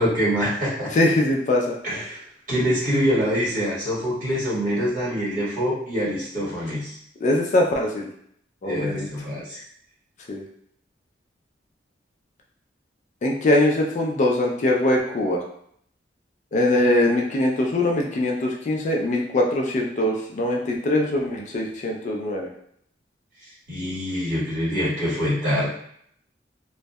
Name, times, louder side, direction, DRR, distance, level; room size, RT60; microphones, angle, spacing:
voice 1, 0.0-0.9 1.8-2.2 2.5-7.0 8.6-9.6 23.7-25.7, equal, 50° right, -9 dB, 1.5 m, -25 dB
voice 2, 0.9-1.8 7.2-8.1 8.6-9.1 10.3-10.4 13.2-15.4 16.5-22.5, left 1 dB, 45° left, 0 dB, 0.4 m, -22 dB
2.6 x 2.1 x 2.2 m, 0.68 s
head